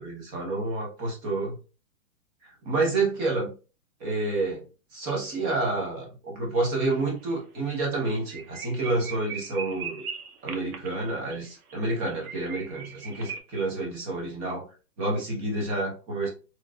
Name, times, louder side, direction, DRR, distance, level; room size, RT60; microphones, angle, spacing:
voice 1, 0.0-1.6 2.6-3.5 4.0-4.6 4.9-10.1 10.4-14.7 15.0-16.3, right 2 dB, 20° right, -1 dB, 0.8 m, -29 dB
sound 1, 6.6-6.9 7.2-7.3 7.7-7.8 8.1-13.4, right 6 dB, 90° right, 0.8 m, -40 dB
3.1 x 2.3 x 2.2 m, 0.34 s
hypercardioid pair, 150°, 42 cm